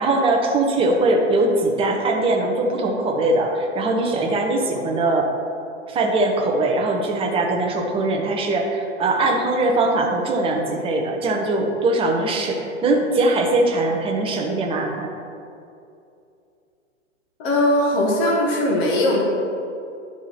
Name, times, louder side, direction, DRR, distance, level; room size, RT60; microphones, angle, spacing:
voice 1, 0.0-5.3 5.9-15.1, right 2 dB, 15° right, 1 dB, 0.9 m, -21 dB
voice 2, 17.4-19.2, left 1 dB, 40° left, -2 dB, 2.0 m, -19 dB
11.0 x 4.8 x 4.3 m, 2.6 s
hypercardioid pair, 125°, 38 cm